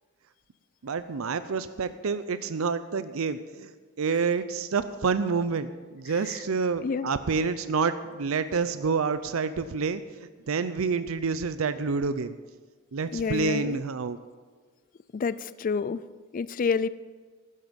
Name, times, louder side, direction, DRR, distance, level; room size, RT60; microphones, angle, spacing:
voice 1, 0.8-3.7 4.0-10.0 10.5-12.4 12.9-14.2, right 5 dB, 85° right, 12 dB, 0.6 m, -28 dB
voice 2, 13.1-13.8 15.1-16.0 16.3-16.9, left 5 dB, 40° left, 16 dB, 0.4 m, -28 dB
15.0 x 12.0 x 5.2 m, 1.5 s
head